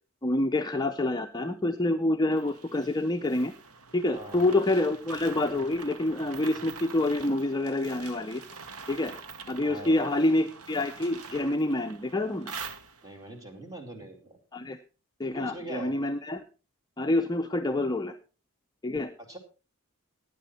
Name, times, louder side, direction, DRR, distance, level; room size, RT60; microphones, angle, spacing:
voice 1, 0.2-3.5 3.9-8.4 8.9-9.1 9.5-12.5 14.5-14.8 15.2-16.4 17.0-18.1 18.8-19.1, left 2 dB, 20° left, 5 dB, 0.6 m, -27 dB
sound 1, 2.3-13.3, right 5 dB, 90° right, 1.2 m, -45 dB
voice 2, 4.1-4.4 9.6-10.1 13.0-14.4 15.3-16.0 19.2-19.4, right 1 dB, 15° right, 4 dB, 2.5 m, -42 dB
15.0 x 9.7 x 4.3 m, 0.34 s
head